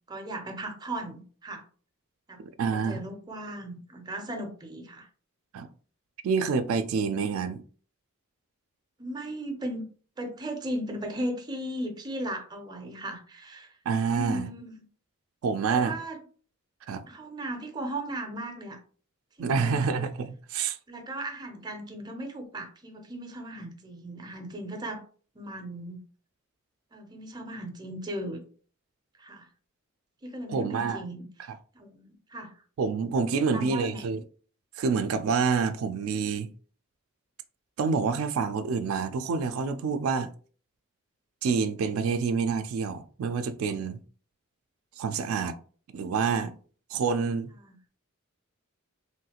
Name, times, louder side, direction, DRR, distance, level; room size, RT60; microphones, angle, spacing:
voice 1, 0.1-1.7 2.3-2.4 2.7-5.1 9.0-9.9 10.2-13.8 14.1-14.9 15.7-16.2 17.1-18.8 19.4-19.9 20.9-25.0 25.3-26.0 26.9-28.4 29.2-29.5 30.2-31.3 31.7-32.6 33.4-34.1 47.6-47.8, right 1 dB, 20° right, 0.4 m, -37 dB
voice 2, 2.4-3.0 5.5-5.7 6.2-7.6 13.9-14.5 15.4-16.0 16.9-17.0 19.4-20.8 30.5-31.0 32.8-34.2 34.8-36.5 37.8-40.3 41.4-44.0 45.0-45.5 45.9-46.5 46.9-47.5, right 5 dB, 80° right, 0.3 m, -27 dB
3.1 x 2.4 x 2.8 m
head